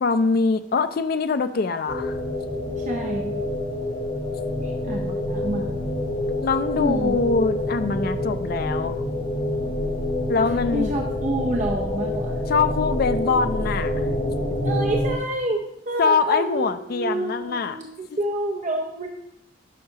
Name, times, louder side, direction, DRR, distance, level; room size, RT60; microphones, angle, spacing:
voice 1, 0.0-2.2 6.4-8.9 10.3-10.9 12.5-13.9 16.0-17.8, left 4 dB, 50° left, 10 dB, 0.3 m, -23 dB
sound 1, 1.9-15.2, left 1 dB, 65° left, 1.7 m, -27 dB
voice 2, 2.8-3.3 4.6-5.8 6.8-7.2 10.7-12.4 14.6-19.1, right 1 dB, 40° right, 0 dB, 0.7 m, -28 dB
11.5 x 5.6 x 2.8 m, 0.77 s
head